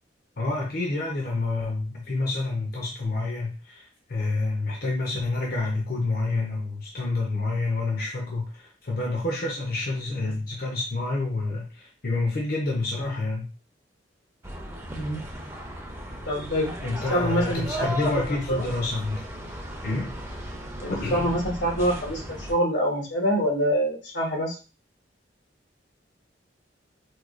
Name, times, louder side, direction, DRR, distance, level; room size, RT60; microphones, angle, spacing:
voice 1, 0.4-13.5 16.8-19.2 19.8-20.2 20.9-21.3, left 2 dB, 55° left, -1 dB, 0.7 m, -28 dB
sound 1, 14.4-22.5, right 1 dB, 15° right, 0.6 m, -36 dB
voice 2, 14.9-15.2 16.3-16.7 17.1-17.9 18.1-18.2 18.5-18.6 20.8-24.6, equal, 85° left, 0 dB, 1.1 m, -25 dB
4.6 x 2.3 x 2.4 m, 0.33 s
head